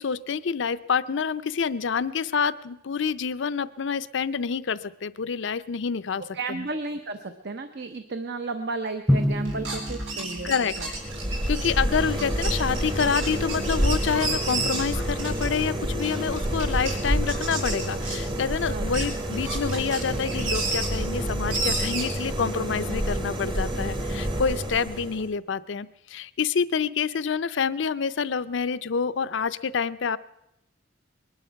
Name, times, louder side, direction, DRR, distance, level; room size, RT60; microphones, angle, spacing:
voice 1, 0.0-6.2 6.5-6.7 10.4-10.7 11.5-30.2, left 6 dB, 65° left, 14 dB, 0.5 m, -27 dB
voice 2, 6.2-10.9 11.2-11.3 18.7-18.9, right 3 dB, 60° right, 8 dB, 0.8 m, -33 dB
Drum, 9.1-11.3, equal, ahead, 0.5 m, -27 dB
sound 1, 9.4-15.6 16.0-16.9 17.3-18.4 18.8-20.9 21.5-22.0, right 3 dB, 80° right, 4.3 m, -32 dB
sound 2, 10.7-25.3, right 1 dB, 25° right, 1.1 m, -29 dB
21.0 x 11.5 x 5.7 m, 0.86 s
head